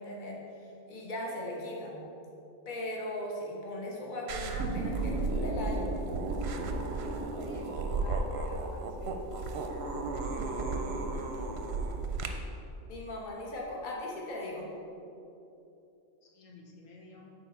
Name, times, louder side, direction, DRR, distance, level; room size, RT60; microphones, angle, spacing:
voice 1, 0.0-2.0 2.6-6.0 10.2-11.5 12.9-14.7, left 1 dB, 40° left, -2 dB, 1.2 m, -39 dB
sound 1, 4.3-12.3, right 3 dB, 60° right, 0.8 m, -33 dB
voice 2, 7.4-9.2 16.2-17.3, left 2 dB, 75° left, -1 dB, 1.2 m, -50 dB
7.0 x 4.3 x 5.4 m, 2.8 s
omnidirectional pair, 1.4 m